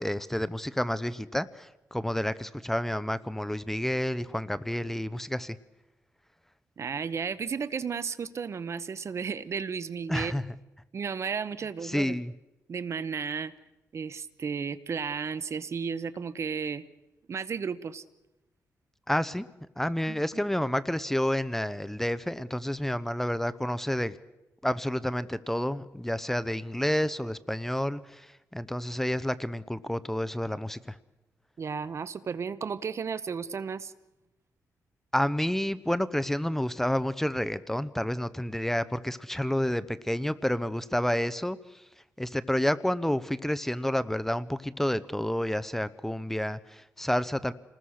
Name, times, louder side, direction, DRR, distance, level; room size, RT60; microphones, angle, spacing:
voice 1, 0.0-5.6 10.1-10.5 11.8-12.3 19.1-19.5 19.8-24.2 24.6-31.0 35.1-41.8 42.2-47.5, left 1 dB, 5° left, 15 dB, 0.8 m, -29 dB
voice 2, 6.8-10.3 10.9-12.1 12.7-13.5 13.9-16.8 17.3-18.0 20.1-20.2 31.6-33.9, right 6 dB, 55° right, 15 dB, 1.0 m, -33 dB
28.0 x 20.0 x 6.5 m, 0.99 s
cardioid pair, 95°, 6 cm